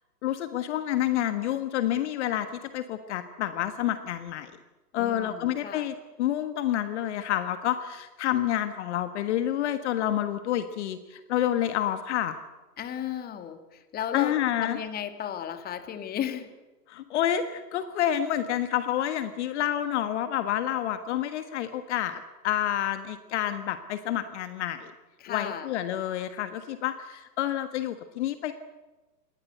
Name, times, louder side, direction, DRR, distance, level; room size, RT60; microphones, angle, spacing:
voice 1, 0.2-2.5 2.7-4.5 4.9-12.3 14.1-14.8 16.9-24.9 25.3-28.5, left 11 dB, 45° left, 11 dB, 1.5 m, -28 dB
voice 2, 4.9-5.9 12.8-16.5 25.2-25.7, left 9 dB, 20° left, 9 dB, 2.0 m, -34 dB
27.0 x 20.0 x 8.0 m, 1.1 s
figure-of-eight pair, 115°, 49 cm